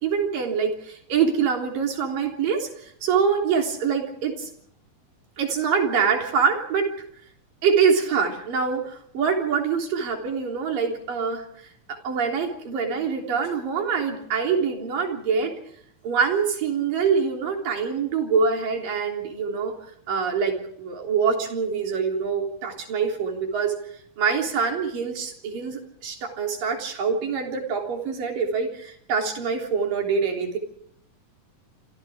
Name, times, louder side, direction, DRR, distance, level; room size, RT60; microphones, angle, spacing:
voice 1, 0.0-4.5 5.4-6.9 7.6-11.5 11.9-15.6 16.0-19.7 20.1-23.8 24.2-30.6, right 6 dB, 85° right, 2 dB, 5.2 m, -25 dB
27.5 x 26.5 x 3.7 m, 0.69 s
omnidirectional pair, 3.8 m